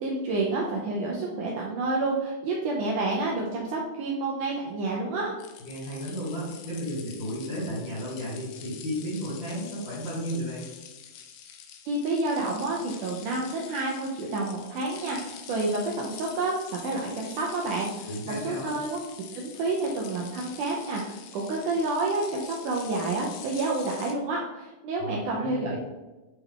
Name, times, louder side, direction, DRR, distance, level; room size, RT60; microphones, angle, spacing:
voice 1, 0.0-5.3 11.9-19.0 19.3-25.8, right 2 dB, 80° right, -2 dB, 1.8 m, -29 dB
sound 1, 5.4-24.1, left 8 dB, 80° left, 2.4 m, -46 dB
voice 2, 5.6-10.6 18.1-18.7 25.0-25.7, equal, 55° left, -8 dB, 1.3 m, -33 dB
8.5 x 3.4 x 3.6 m, 1.1 s
omnidirectional pair, 4.5 m